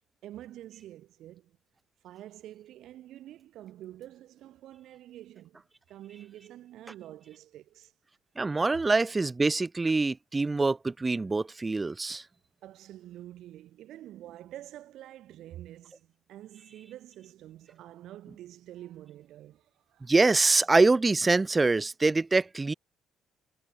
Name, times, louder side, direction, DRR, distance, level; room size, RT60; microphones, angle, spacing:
voice 1, 0.2-1.6 2.0-5.6 5.9-7.9 12.6-20.1, right 13 dB, 60° right, 2.0 m, -47 dB
voice 2, 8.4-12.2 20.1-22.7, right 3 dB, 20° right, 0.3 m, -24 dB
figure-of-eight pair, 50°, 0 cm